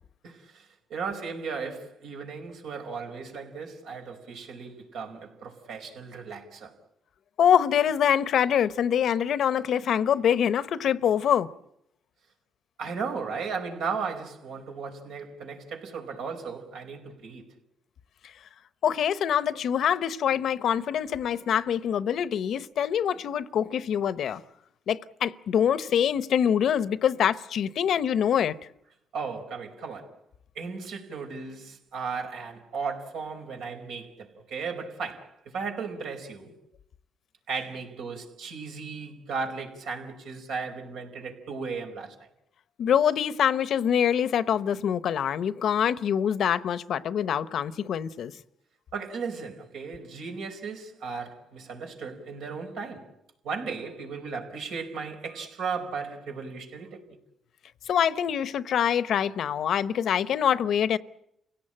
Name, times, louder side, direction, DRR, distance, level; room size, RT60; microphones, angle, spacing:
voice 1, 0.2-6.7 12.8-17.4 29.1-30.1 30.5-36.5 37.5-42.3 48.9-53.1 53.4-57.2, right 5 dB, 85° right, 4.6 m, -36 dB
voice 2, 7.4-11.5 18.2-18.3 18.8-24.4 24.9-28.6 42.8-48.3 57.9-61.0, left 9 dB, 65° left, 0.9 m, -25 dB
29.0 x 17.5 x 8.9 m
cardioid pair, 90°, 0 cm